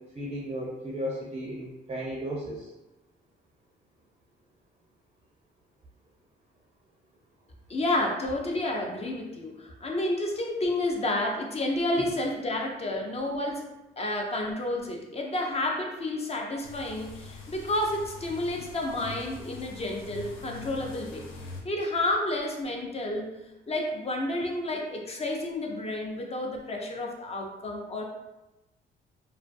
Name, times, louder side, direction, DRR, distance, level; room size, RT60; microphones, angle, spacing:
voice 1, 0.0-2.7 12.0-12.1, equal, 30° right, -4 dB, 0.5 m, -35 dB
voice 2, 7.7-13.7 14.0-21.3 21.6-23.3 23.7-28.0, left 1 dB, 30° left, 1 dB, 0.5 m, -30 dB
sound 1, 16.6-21.6, left 3 dB, 80° left, 0.5 m, -44 dB
2.4 x 2.2 x 2.5 m, 1.0 s
cardioid pair, 80°, 21 cm